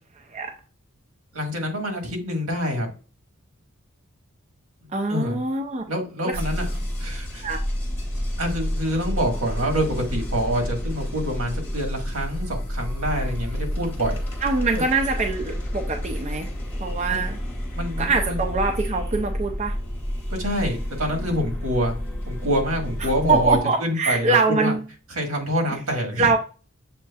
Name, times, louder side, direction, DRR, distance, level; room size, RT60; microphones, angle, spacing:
voice 1, 1.3-2.9 5.1-5.4 5.9-7.5 8.4-14.2 14.7-14.8 17.1-17.2 17.7-18.4 20.4-21.9 22.3-24.7 25.1-26.4, equal, 85° right, 2 dB, 1.6 m, -26 dB
voice 2, 4.9-5.8 6.2-6.4 7.4-7.6 14.4-16.5 16.8-17.4 18.0-19.8 23.0-24.8 26.2-26.4, right 3 dB, 35° right, 3 dB, 0.5 m, -23 dB
sound 1, 6.3-23.6, equal, 10° left, 1.0 m, -30 dB
7.4 x 2.9 x 2.3 m, 0.34 s
head